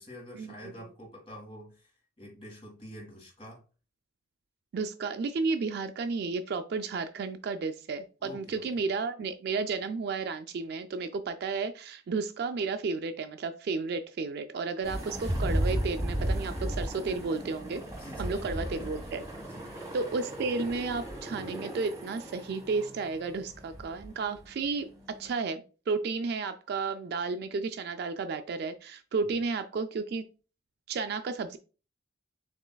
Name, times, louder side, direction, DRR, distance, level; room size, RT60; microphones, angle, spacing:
voice 1, 0.0-1.9 2.2-3.6 8.2-8.8 17.9-18.9 19.4-19.8, equal, 30° left, -1 dB, 1.8 m, -47 dB
voice 2, 4.7-17.8 18.2-19.2 19.9-30.2 30.9-31.6, right 4 dB, 55° right, 8 dB, 0.3 m, -32 dB
sound 1, 14.8-25.3, right 1 dB, 15° right, 1.5 m, -35 dB
7.2 x 3.1 x 2.2 m, 0.35 s
head